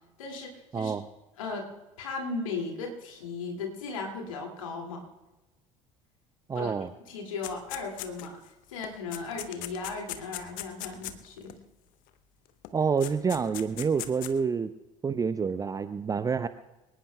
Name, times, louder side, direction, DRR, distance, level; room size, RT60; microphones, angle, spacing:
voice 1, 0.2-0.9 1.4-1.7 2.0-5.0 6.5-6.8 7.0-8.4 8.7-11.6, left 4 dB, 70° left, 1 dB, 2.4 m, -36 dB
voice 2, 0.7-1.0 6.5-6.9 12.7-14.7 15.0-16.5, right 6 dB, 20° right, 13 dB, 0.6 m, -28 dB
sound 1, 7.4-8.5 8.8-11.6 12.6-12.7 13.0-14.3, left 14 dB, 50° left, 0.9 m, -39 dB
25.5 x 18.5 x 2.3 m, 1.1 s
figure-of-eight pair, 65°, 17 cm